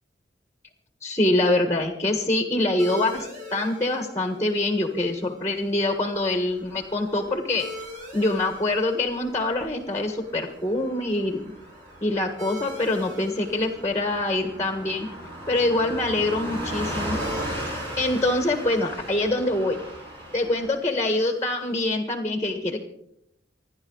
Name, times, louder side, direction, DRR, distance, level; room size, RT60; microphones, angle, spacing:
voice 1, 1.0-7.7 8.1-11.4 12.0-15.1 15.5-17.2 18.0-19.8 20.3-22.8, left 2 dB, 15° left, 6 dB, 1.5 m, -25 dB
sound 1, 2.8-21.9, left 2 dB, 45° right, 4.4 m, -44 dB
Car passing by / Truck, 6.4-20.7, right 1 dB, 30° right, 6.1 m, -37 dB
27.5 x 10.5 x 4.0 m, 0.76 s
head